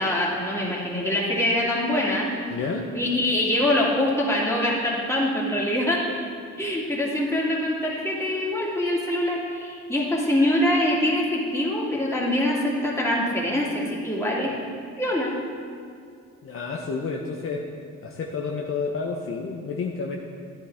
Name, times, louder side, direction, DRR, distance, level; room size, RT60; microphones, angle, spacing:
voice 1, 0.0-2.3 2.9-6.1 6.6-14.5 15.0-15.4, left 1 dB, 10° left, -5 dB, 2.5 m, -24 dB
voice 2, 2.5-2.9 16.4-17.6 18.0-20.2, left 4 dB, 45° left, 0 dB, 0.8 m, -30 dB
12.5 x 9.9 x 3.5 m, 2.3 s
cardioid pair, 90°, 30 cm